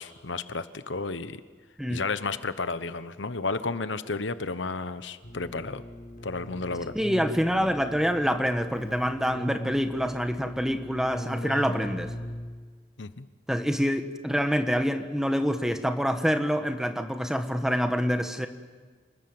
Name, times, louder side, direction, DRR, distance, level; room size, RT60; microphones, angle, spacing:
voice 1, 0.0-1.4 1.9-5.8 6.2-6.9 13.0-13.3, left 3 dB, 80° left, 12 dB, 1.1 m, -32 dB
Keyboard (musical), 5.2-12.8, equal, 55° left, 3.7 m, -39 dB
voice 2, 6.9-12.1 13.5-18.5, equal, 5° right, 7 dB, 1.3 m, -26 dB
29.0 x 20.5 x 7.9 m, 1.5 s
head